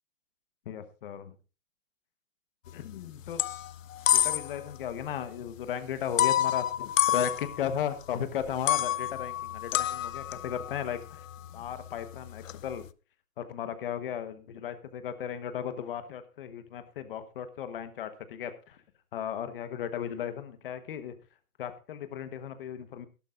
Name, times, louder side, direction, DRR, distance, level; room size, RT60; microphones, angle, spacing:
voice 1, 0.6-1.3 2.7-3.4 4.1-11.2 11.5-12.9 13.4-18.8 19.1-21.1 21.6-23.1, left 9 dB, 40° left, 10 dB, 1.2 m, -36 dB
sound 1, 2.7-3.0 3.2-4.7 5.0-5.1 6.2-8.0 8.4-12.8, left 11 dB, 65° left, 0.6 m, -29 dB
17.0 x 11.5 x 2.5 m, 0.32 s
hypercardioid pair, 160°, 44 cm